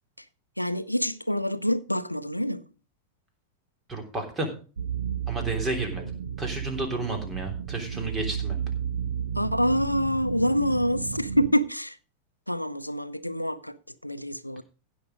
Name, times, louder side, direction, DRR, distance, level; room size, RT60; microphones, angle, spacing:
voice 1, 0.6-2.6 9.4-12.0 12.5-13.8 14.0-14.6, equal, 90° left, 0.7 m, -26 dB
voice 2, 3.9-4.5 5.3-6.1 6.4-8.6, right 2 dB, 15° right, 3.4 m, -31 dB
sound 1, 4.8-11.5, right 8 dB, 70° right, 1.1 m, -33 dB
16.0 x 6.1 x 5.0 m
figure-of-eight pair, 90°, 0 cm